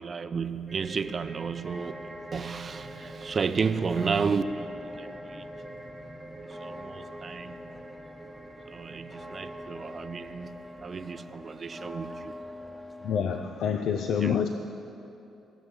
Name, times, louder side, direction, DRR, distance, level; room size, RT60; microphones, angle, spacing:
voice 1, 0.0-5.4 6.5-7.6 8.7-12.4 14.2-14.3, right 5 dB, 45° right, 11 dB, 0.6 m, -32 dB
sound 1, 0.7-12.2, right 3 dB, 20° right, 1.3 m, -47 dB
sound 2, 1.6-13.6, left 1 dB, 10° left, 1.2 m, -44 dB
voice 2, 13.0-14.5, left 7 dB, 70° left, 6 dB, 0.6 m, -27 dB
17.0 x 6.4 x 8.2 m, 2.8 s
supercardioid pair, 65°, 0 cm